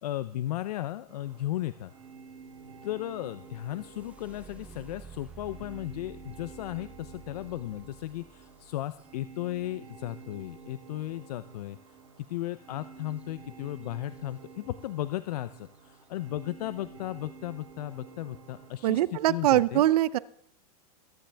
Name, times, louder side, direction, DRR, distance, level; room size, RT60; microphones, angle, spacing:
voice 1, 0.0-1.9 2.8-11.8 12.2-19.8, left 14 dB, 80° left, 14 dB, 0.6 m, -35 dB
sound 1, 1.1-19.0, right 5 dB, 50° right, 5.6 m, -50 dB
sound 2, 3.2-11.0 13.1-13.2 13.7-14.2 14.8-14.9 15.4-15.8, right 6 dB, 5° right, 0.5 m, -52 dB
voice 2, 18.8-20.2, right 14 dB, 75° right, 19 dB, 0.7 m, -23 dB
22.5 x 10.0 x 3.4 m, 0.67 s
supercardioid pair, 145°, 20 cm